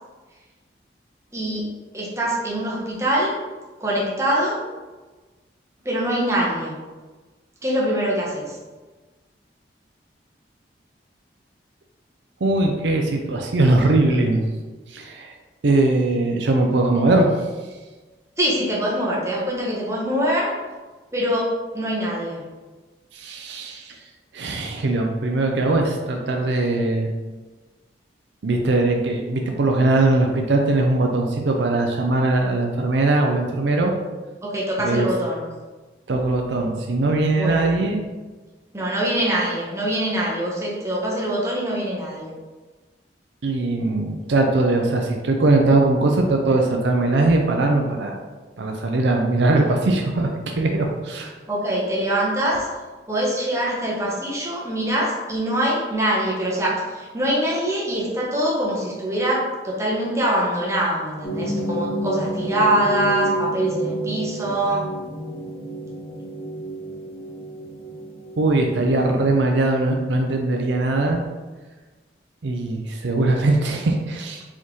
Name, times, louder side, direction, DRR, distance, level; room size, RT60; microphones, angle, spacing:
voice 1, 1.3-1.6 1.9-3.4 3.8-4.6 5.8-6.7 7.6-8.6 18.4-20.5 21.1-21.5 21.7-22.4 34.4-35.5 37.3-37.7 38.7-42.3 51.5-52.7 53.1-64.9, right 1 dB, 15° right, -5 dB, 1.0 m, -23 dB
voice 2, 12.4-14.4 14.9-15.3 15.6-17.3 23.1-24.0 24.3-27.1 28.4-33.9 34.8-35.1 36.1-38.0 43.4-48.2 48.6-51.3 68.4-71.2 72.4-74.4, right 2 dB, 75° right, 2 dB, 0.5 m, -20 dB
sound 1, 61.2-69.4, right 1 dB, 30° left, 0.6 m, -30 dB
4.4 x 3.5 x 3.1 m, 1.3 s
head